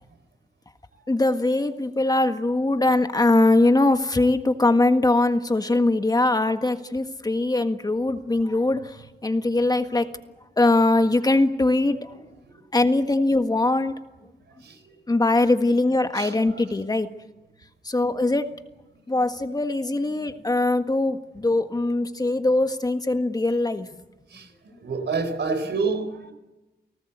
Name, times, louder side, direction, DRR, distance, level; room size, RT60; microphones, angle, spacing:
voice 1, 1.1-10.1 10.6-12.0 12.7-13.9 15.1-17.1 17.8-18.5 19.1-23.9, left 2 dB, 20° left, 8 dB, 1.6 m, -21 dB
voice 2, 14.6-14.9 16.1-16.6 24.3-26.3, right 4 dB, 80° right, 10 dB, 4.0 m, -29 dB
30.0 x 18.5 x 8.1 m, 1.0 s
wide cardioid pair, 105°, 18 cm